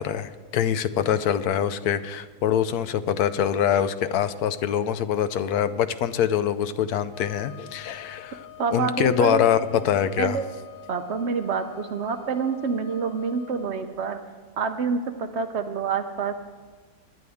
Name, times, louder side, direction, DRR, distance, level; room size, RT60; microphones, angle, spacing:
voice 1, 0.0-10.4, left 9 dB, 75° left, 13 dB, 1.1 m, -24 dB
Wind instrument woodwind instrument, 7.1-13.8, left 12 dB, 50° left, 0.7 m, -46 dB
voice 2, 8.6-9.4 9.7-9.8 10.2-10.4 10.9-14.2 14.6-16.4, right 5 dB, 60° right, 8 dB, 0.7 m, -27 dB
20.0 x 11.0 x 3.5 m, 1.5 s
omnidirectional pair, 1.7 m